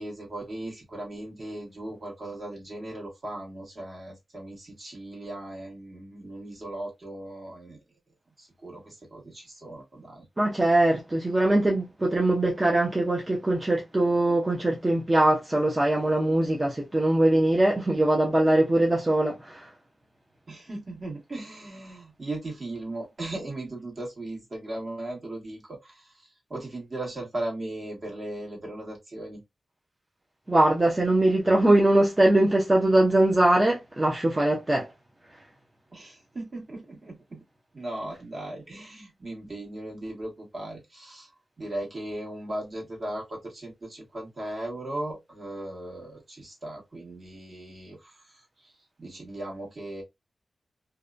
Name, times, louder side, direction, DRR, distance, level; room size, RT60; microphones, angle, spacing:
voice 1, 0.0-7.8 8.4-10.3 20.5-29.4 35.9-37.4 37.7-41.3 41.6-48.7 49.0-50.0, right 1 dB, 45° right, 1.4 m, -37 dB
voice 2, 10.4-19.7 30.5-34.9, right 1 dB, 20° right, 0.6 m, -22 dB
2.7 x 2.2 x 2.4 m
wide cardioid pair, 125°, 0 cm